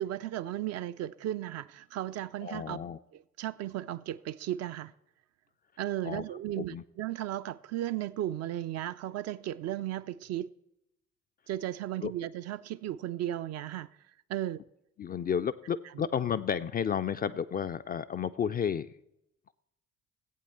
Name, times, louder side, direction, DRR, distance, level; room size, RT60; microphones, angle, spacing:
voice 1, 0.0-2.8 3.1-4.9 5.8-10.5 11.5-13.9 14.3-14.6, right 13 dB, 45° right, 0.4 m, -35 dB
voice 2, 2.4-3.0 6.0-6.3 6.6-6.8 12.0-12.1 15.0-18.9, left 7 dB, 25° left, 0.4 m, -32 dB
15.0 x 8.5 x 4.3 m
figure-of-eight pair, 45°, 38 cm